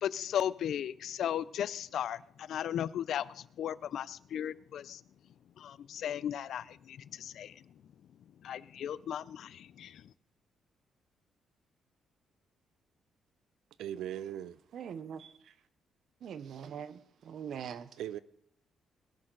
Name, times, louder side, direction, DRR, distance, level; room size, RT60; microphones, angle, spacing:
voice 1, 0.0-5.0 5.6-7.5 8.4-10.0, left 10 dB, 60° left, 0.5 m, -36 dB
voice 2, 13.8-14.6 18.0-18.2, right 11 dB, 90° right, 0.6 m, -38 dB
voice 3, 14.7-15.5 16.2-17.9, right 8 dB, 55° right, 0.9 m, -43 dB
21.0 x 10.5 x 3.9 m
cardioid pair, 155°, 0 cm